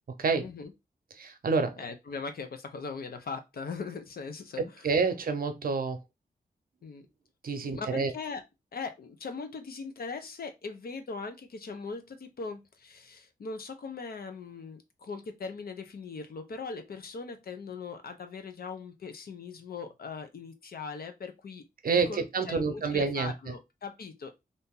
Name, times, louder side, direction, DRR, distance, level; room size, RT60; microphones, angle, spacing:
voice 1, 0.4-0.7 1.8-4.9 6.8-7.1 7.6-8.4 8.7-21.6 21.9-24.3, left 4 dB, 75° left, 0.7 m, -40 dB
voice 2, 1.2-1.8 4.8-6.0 7.4-8.1 21.8-23.3, right 4 dB, 65° right, 0.7 m, -28 dB
2.8 x 2.6 x 3.6 m
wide cardioid pair, 115°, 16 cm